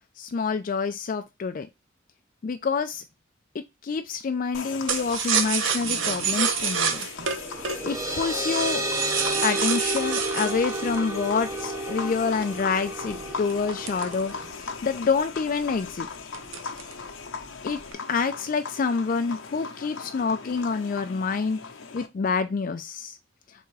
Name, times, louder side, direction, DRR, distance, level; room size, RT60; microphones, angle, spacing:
voice 1, 0.2-1.7 2.4-3.0 3.5-7.1 7.8-8.9 9.4-16.1 17.6-17.8 18.1-21.6 21.9-23.2, left 5 dB, 45° left, 0.3 m, -27 dB
sound 1, 4.5-22.1, left 5 dB, 80° left, 0.7 m, -38 dB
sound 2, 4.9-11.8 12.3-14.8 15.2-15.3 15.6-15.9 16.3-17.1 17.4-17.9, right 7 dB, 75° right, 0.7 m, -28 dB
sound 3, 7.3-14.5, right 2 dB, 15° right, 0.6 m, -31 dB
3.7 x 3.5 x 3.1 m
head